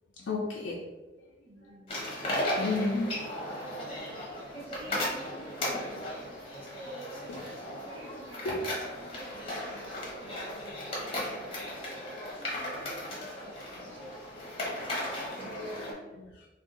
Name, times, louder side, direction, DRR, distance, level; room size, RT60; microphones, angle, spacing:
voice 1, 0.2-0.8 1.2-1.3 2.6-3.1 7.3-7.4 8.4-8.6 16.1-16.5, left 3 dB, 65° left, -4 dB, 0.4 m, -32 dB
voice 2, 1.4-2.0 2.6-2.8 3.3-13.7 14.4-16.2, right 2 dB, 20° right, -6 dB, 0.7 m, -49 dB
sound 1, 1.9-15.9, left 1 dB, 30° left, 0.8 m, -36 dB
2.6 x 2.2 x 3.7 m, 1.2 s
head